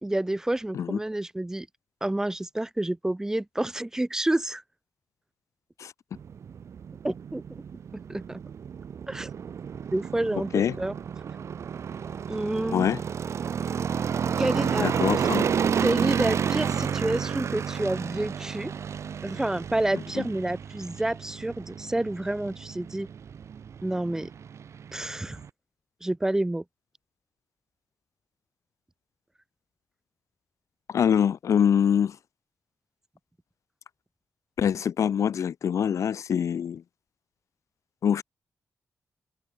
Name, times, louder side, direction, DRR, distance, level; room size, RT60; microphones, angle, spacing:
voice 1, 0.0-1.7 2.0-4.6 7.0-7.6 7.9-8.4 9.1-9.3 9.9-10.9 12.3-12.9 14.4-14.9 15.8-18.7 19.2-23.1 23.8-24.3 24.9-25.4 26.0-26.6, right 1 dB, 10° right, 4.4 m, -29 dB
sound 1, 6.1-25.5, right 7 dB, 60° right, 4.0 m, -31 dB
voice 2, 14.8-15.5 20.2-20.3 30.9-32.2 34.6-36.8 38.0-38.2, left 8 dB, 65° left, 3.6 m, -24 dB
wide cardioid pair, 165°, 6 cm